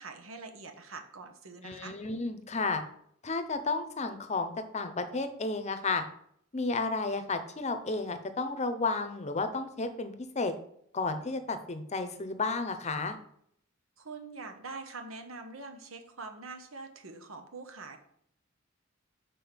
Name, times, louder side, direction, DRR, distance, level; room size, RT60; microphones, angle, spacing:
voice 1, 0.0-2.0 14.0-18.0, right 3 dB, 90° right, 6 dB, 1.1 m, -44 dB
voice 2, 1.6-2.8 3.2-6.0 6.5-10.5 10.9-13.2, left 3 dB, 35° left, 9 dB, 0.7 m, -32 dB
6.3 x 4.4 x 5.1 m, 0.69 s
head